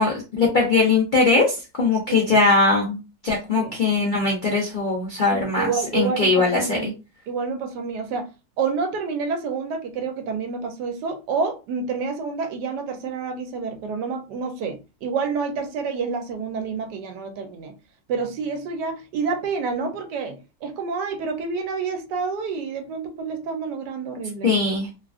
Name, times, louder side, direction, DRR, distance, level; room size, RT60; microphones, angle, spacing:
voice 1, 0.0-5.7 5.9-6.9 24.4-24.9, left 3 dB, 80° left, 0.4 m, -20 dB
voice 2, 5.3-6.9 7.3-8.3 8.6-17.7 18.1-24.5, right 5 dB, 80° right, 1.2 m, -28 dB
3.1 x 2.4 x 2.3 m
omnidirectional pair, 1.9 m